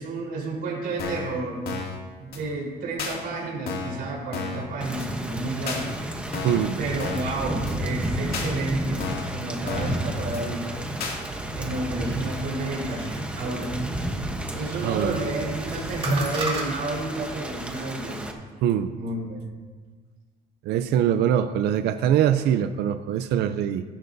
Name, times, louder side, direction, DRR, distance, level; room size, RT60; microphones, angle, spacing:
voice 1, 0.0-1.6 2.2-5.9 6.8-9.1 9.3-10.8 11.6-13.1 13.4-13.7 14.0-18.2 18.9-19.4, right 2 dB, 65° right, -3 dB, 4.1 m, -31 dB
sound 1, 1.0-1.3 1.7-2.0 2.3-2.4 3.0-3.2 3.7-4.0 4.3-4.7 5.0-5.1 5.7-5.8 6.3-6.7 7.0-7.3 7.7-7.8 8.3-8.5 9.0-9.3 9.7-10.0 10.3-10.4 11.0-11.2, left 4 dB, 65° left, 2.4 m, -32 dB
Thunder / Rain, 4.8-18.3, right 1 dB, 5° right, 1.0 m, -32 dB
voice 2, 6.4-6.8 14.8-15.2 18.6-18.9 20.7-23.8, right 10 dB, 85° right, 10 dB, 0.5 m, -23 dB
sound 2, 11.2-16.7, right 1 dB, 30° right, 2.5 m, -34 dB
15.0 x 13.5 x 2.7 m, 1.4 s
cardioid pair, 155°, 17 cm